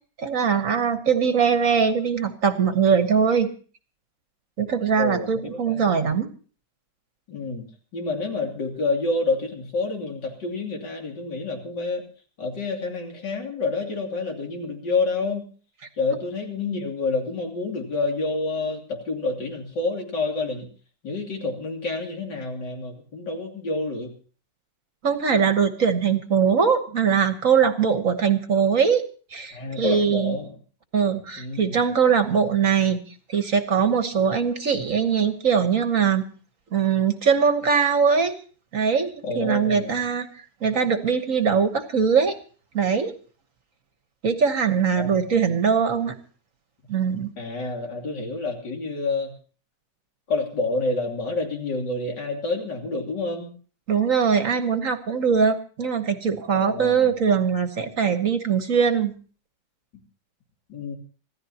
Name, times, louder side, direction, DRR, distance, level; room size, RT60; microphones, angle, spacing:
voice 1, 0.2-3.5 4.6-6.3 25.0-29.0 29.3-30.4 30.9-33.0 33.3-36.3 36.7-38.3 38.7-40.3 40.6-42.4 42.7-43.1 44.2-46.1 46.9-47.3 53.9-59.1, right 6 dB, 50° right, 8 dB, 1.5 m, -21 dB
voice 2, 5.0-5.9 7.3-7.6 7.9-12.0 12.4-15.4 16.0-20.7 21.0-24.1 29.5-30.5 31.4-31.8 39.2-39.9 44.9-45.4 47.4-49.3 50.3-53.5 56.5-57.2 60.7-60.9, left 3 dB, 75° left, 1 dB, 3.5 m, -28 dB
26.0 x 15.5 x 2.9 m, 0.39 s
omnidirectional pair, 1.9 m